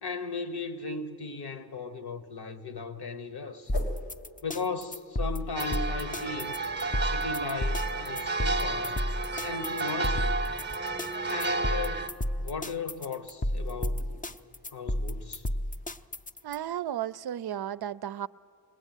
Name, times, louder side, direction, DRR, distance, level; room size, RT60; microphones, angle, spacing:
voice 1, 0.0-3.7 4.4-6.5 7.0-9.0 9.4-10.4 11.3-12.1 12.4-14.1 14.7-15.5, left 4 dB, 65° left, 1.2 m, -36 dB
sound 1, 3.6-4.1 8.1-11.6 12.6-15.9, left 2 dB, 85° left, 2.3 m, -47 dB
sound 2, 3.7-16.6, left 1 dB, 20° left, 0.5 m, -32 dB
sound 3, 5.6-12.1, right 3 dB, 25° right, 0.8 m, -32 dB
voice 2, 16.4-18.3, right 11 dB, 65° right, 0.5 m, -34 dB
21.5 x 19.0 x 9.1 m
wide cardioid pair, 75°, 41 cm